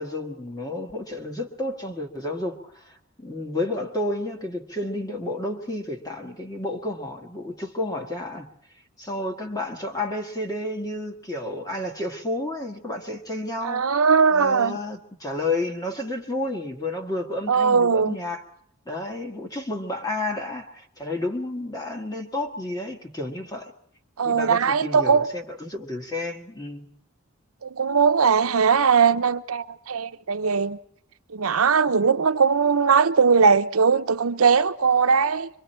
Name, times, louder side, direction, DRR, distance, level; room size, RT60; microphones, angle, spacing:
voice 1, 0.0-8.5 9.0-13.9 14.3-18.4 18.9-23.7 24.2-26.9, left 2 dB, 20° left, 1.8 m, -31 dB
voice 2, 13.6-14.8 17.5-18.2 24.2-25.3 27.6-30.8 31.3-35.5, right 5 dB, 90° right, 0.7 m, -20 dB
25.5 x 23.5 x 4.4 m
head